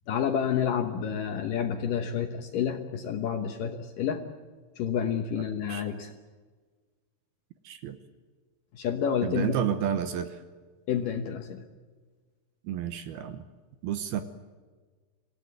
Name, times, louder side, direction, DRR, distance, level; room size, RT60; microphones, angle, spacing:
voice 1, 0.1-4.2 4.8-6.1 8.7-9.6 10.9-11.6, left 8 dB, 65° left, 5 dB, 2.3 m, -29 dB
voice 2, 7.7-8.0 9.2-10.3 12.7-13.4 13.8-14.2, right 9 dB, 70° right, 9 dB, 2.7 m, -30 dB
26.5 x 16.5 x 9.3 m, 1.4 s
omnidirectional pair, 5.1 m